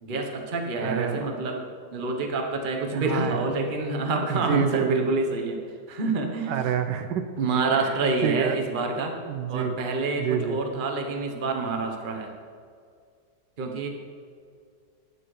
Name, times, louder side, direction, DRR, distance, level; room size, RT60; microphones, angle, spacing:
voice 1, 0.0-5.6 5.9-6.6 7.4-9.2 9.5-12.3 13.6-13.9, right 3 dB, 35° right, 3 dB, 1.0 m, -27 dB
voice 2, 0.8-1.3 2.9-3.5 4.3-5.2 6.5-7.2 7.8-7.9 8.2-8.6 9.3-9.7 10.2-10.6, right 8 dB, 75° right, 8 dB, 1.2 m, -28 dB
12.0 x 9.1 x 3.3 m, 2.2 s
omnidirectional pair, 2.0 m